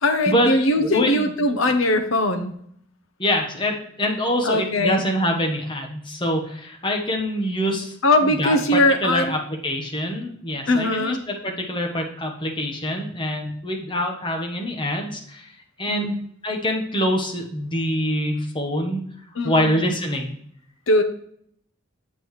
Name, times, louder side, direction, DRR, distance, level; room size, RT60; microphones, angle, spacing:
voice 1, 0.0-2.5 4.4-5.0 8.0-9.4 10.7-11.2 15.9-16.2 19.4-19.8 20.9-21.0, left 1 dB, 80° left, 6 dB, 0.9 m, -20 dB
voice 2, 0.8-1.3 3.2-8.0 8.2-15.5 15.8-16.1 16.4-19.0 19.4-20.4, equal, 25° left, 2 dB, 1.1 m, -25 dB
7.5 x 6.9 x 3.2 m, 0.67 s
head